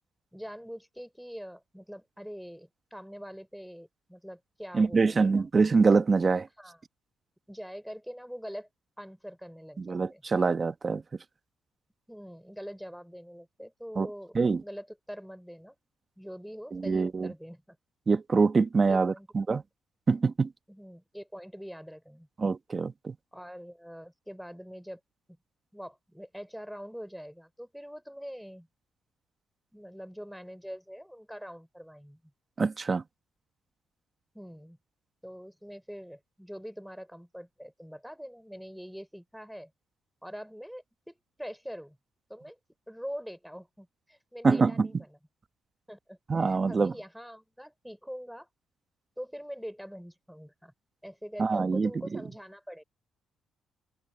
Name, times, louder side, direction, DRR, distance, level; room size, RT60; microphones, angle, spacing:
voice 1, 0.3-5.5 6.6-6.8 7.5-8.7 9.0-10.2 12.1-15.7 16.2-17.8 18.9-19.3 20.7-22.3 23.3-25.0 25.7-28.7 29.7-32.2 34.3-34.8 35.2-39.7 40.2-42.0 42.3-42.6 42.9-45.2 45.9-48.5 49.2-50.7 51.0-52.8, equal, ahead, 4.2 m, -44 dB
voice 2, 4.7-6.5 9.8-11.0 14.0-14.1 14.3-14.6 16.7-17.3 18.1-19.6 20.1-20.5 22.4-23.1 32.6-33.0 44.4-44.9 46.3-46.9 51.4-52.2, right 4 dB, 35° right, 1.2 m, -25 dB
open air
cardioid pair, 90°, 0 cm